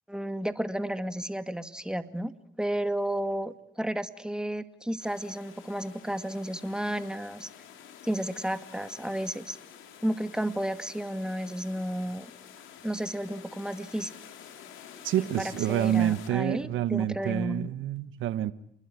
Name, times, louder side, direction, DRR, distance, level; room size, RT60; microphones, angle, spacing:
voice 1, 0.1-2.3 2.6-7.5 8.0-9.6 10.0-12.3 12.8-14.1 15.2-17.7, right 1 dB, 5° right, 2.3 m, -32 dB
Palm Trees in the Wind, 5.0-16.3, left 8 dB, 85° left, 4.4 m, -49 dB
voice 2, 15.0-18.5, right 11 dB, 80° right, 1.1 m, -28 dB
29.0 x 21.0 x 9.5 m
supercardioid pair, 65°, 20 cm